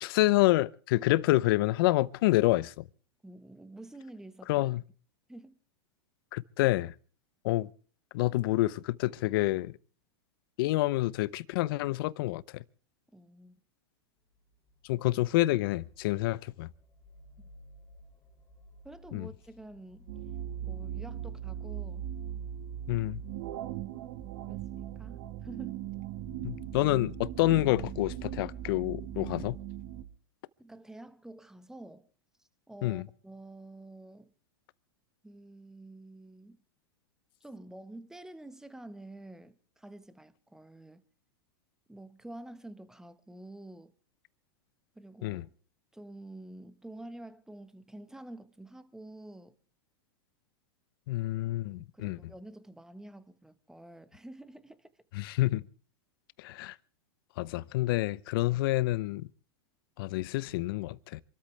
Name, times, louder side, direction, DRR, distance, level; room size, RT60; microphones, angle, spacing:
voice 1, 0.0-2.9 4.5-4.8 6.3-6.9 7.4-7.7 8.1-9.7 10.6-12.6 14.8-16.7 19.1-19.3 22.9-23.2 26.4-29.6 32.8-33.0 45.2-45.4 51.1-52.2 55.1-55.7 56.4-56.8 57.4-59.3 60.0-61.2, left 18 dB, 60° left, 0.8 m, -28 dB
voice 2, 3.2-4.7 5.3-5.6 13.1-13.6 18.8-20.1 20.6-22.0 24.5-25.8 30.6-32.1 32.4-34.3 35.2-36.6 37.4-41.0 41.9-43.9 44.9-45.5 45.9-49.5 51.7-54.9, right 1 dB, 5° right, 1.3 m, -48 dB
sound 1, 14.3-29.1, equal, 20° left, 3.3 m, -56 dB
sound 2, 20.1-30.0, right 11 dB, 60° right, 1.4 m, -39 dB
27.5 x 13.0 x 3.3 m
hypercardioid pair, 115°, 13 cm